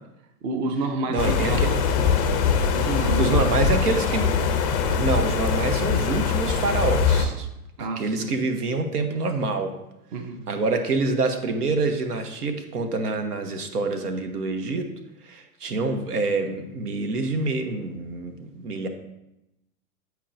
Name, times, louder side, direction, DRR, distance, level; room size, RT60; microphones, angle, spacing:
voice 1, 0.4-1.8 2.7-3.7 7.8-8.3 10.1-10.4, right 3 dB, 30° right, 7 dB, 0.5 m, -29 dB
voice 2, 1.1-1.7 3.2-4.3 4.8-7.5 7.8-9.7 10.5-14.9 15.2-18.9, right 3 dB, 80° right, 7 dB, 1.0 m, -26 dB
sound 1, 1.2-7.3, left 6 dB, 25° left, 0.4 m, -22 dB
8.4 x 4.6 x 2.5 m, 0.89 s
hypercardioid pair, 120°, 46 cm